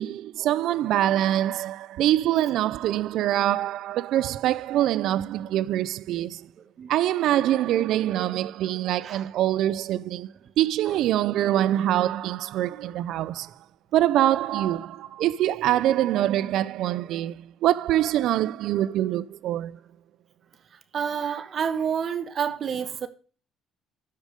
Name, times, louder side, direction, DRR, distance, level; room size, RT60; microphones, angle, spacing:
voice 1, 0.0-6.5 6.9-13.5 13.9-19.8, right 13 dB, 70° right, 0.3 m, -24 dB
voice 2, 20.7-23.1, right 7 dB, 45° right, 1.2 m, -29 dB
12.5 x 5.0 x 5.0 m
cardioid pair, 120°, 0 cm